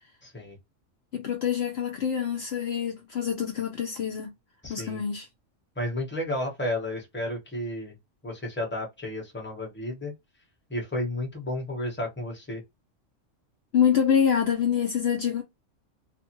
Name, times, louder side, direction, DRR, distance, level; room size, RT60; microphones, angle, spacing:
voice 1, 0.2-0.6 4.6-5.0 5.8-7.9 8.2-10.1 10.7-12.6, left 1 dB, 10° left, 0.9 m, -32 dB
voice 2, 1.1-4.3 4.7-5.3 13.7-15.4, left 8 dB, 60° left, 0.8 m, -26 dB
2.6 x 2.3 x 2.8 m
omnidirectional pair, 1.3 m